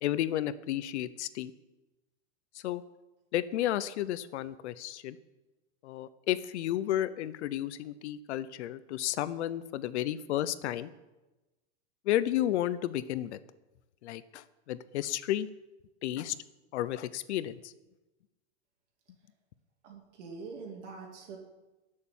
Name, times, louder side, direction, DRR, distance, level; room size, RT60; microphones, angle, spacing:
voice 1, 0.0-1.5 2.6-2.8 3.3-5.2 5.8-10.9 12.1-13.4 14.0-15.5 16.0-16.4 16.7-17.7, left 12 dB, 75° left, 15 dB, 0.8 m, -32 dB
voice 2, 19.8-21.4, right 4 dB, 85° right, 0 dB, 2.9 m, -44 dB
13.0 x 6.7 x 8.3 m, 1.1 s
supercardioid pair, 155°, 34 cm